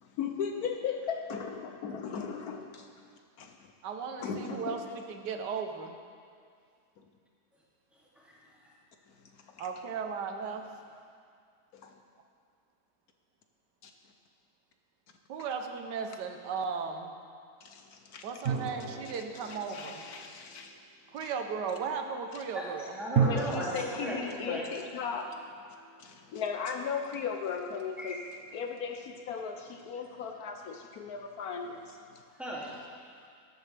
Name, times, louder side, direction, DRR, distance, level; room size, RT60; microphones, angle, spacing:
voice 1, 0.0-2.9 3.4-3.6 4.2-4.8 9.6-9.7 11.7-11.9 13.8-13.9 17.6-18.3 19.1-20.7 21.2-21.3 22.3-22.4 23.2-25.3 26.0-28.2 28.5-32.2, left 6 dB, 70° left, 4 dB, 1.1 m, -37 dB
voice 2, 3.8-6.0 9.6-10.7 15.3-17.1 18.2-20.0 21.1-23.0, right 5 dB, 85° right, 5 dB, 1.5 m, -36 dB
voice 3, 7.9-8.4 22.5-24.7 28.0-28.2 32.3-33.1, equal, ahead, -7 dB, 2.3 m, -38 dB
sound 1, 18.4-20.8 23.2-26.1, right 6 dB, 60° right, 1.4 m, -34 dB
13.5 x 11.0 x 3.4 m, 2.2 s
omnidirectional pair, 1.8 m